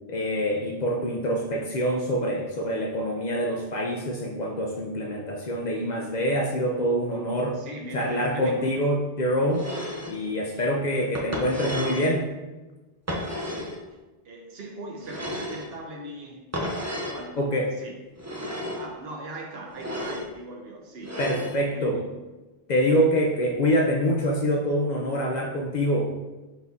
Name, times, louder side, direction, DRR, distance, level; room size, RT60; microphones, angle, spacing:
voice 1, 0.1-7.6 7.9-9.7 10.1-12.3 17.4-17.7 21.2-22.0 22.7-26.1, equal, 55° left, 0 dB, 0.5 m, -25 dB
voice 2, 7.5-8.8 10.5-10.9 14.2-16.5 17.1-17.4 17.8-17.9 18.7-21.2 21.7-22.2, right 2 dB, 75° right, 0 dB, 0.9 m, -40 dB
sound 1, 9.5-10.2 11.2-12.1 13.1-13.8 15.0-15.7 16.5-17.2 18.2-18.9 19.7-20.3 21.0-21.6, equal, 25° right, 0.3 m, -32 dB
4.1 x 2.7 x 3.5 m, 1.2 s
omnidirectional pair, 1.0 m